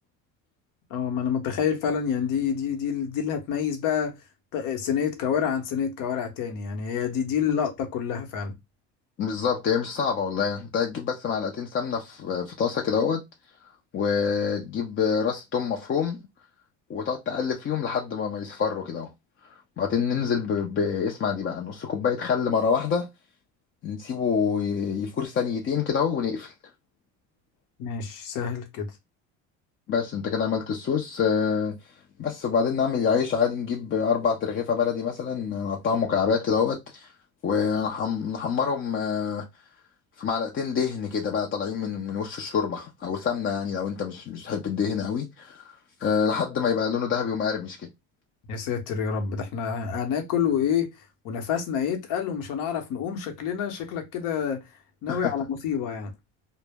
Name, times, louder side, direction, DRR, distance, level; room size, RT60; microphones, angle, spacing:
voice 1, 0.9-4.2 4.5-8.5 27.8-28.9 48.5-50.9 51.2-54.6 55.0-56.1, left 7 dB, 65° left, 0.9 m, -28 dB
voice 2, 9.2-13.2 13.9-16.2 16.9-19.1 19.8-23.1 23.8-26.5 29.9-31.7 32.2-37.1 37.4-39.5 40.2-45.7 46.0-47.9 55.1-55.3, left 6 dB, 35° left, 0.5 m, -26 dB
2.1 x 2.0 x 3.4 m
supercardioid pair, 90°, 34 cm